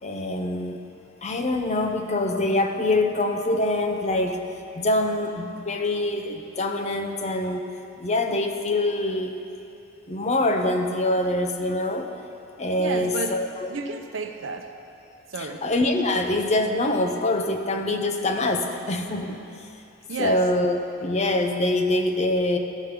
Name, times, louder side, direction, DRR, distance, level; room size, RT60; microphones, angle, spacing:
voice 1, 0.0-0.8 1.2-4.4 4.7-7.7 8.0-9.3 10.1-12.1 12.6-13.5 15.4-19.4 20.2-22.6, left 2 dB, 35° left, 4 dB, 0.6 m, -24 dB
voice 2, 12.8-13.4 13.7-14.7 15.3-15.6 20.1-20.4, right 3 dB, 70° right, 5 dB, 0.7 m, -31 dB
13.0 x 5.1 x 6.0 m, 2.8 s
head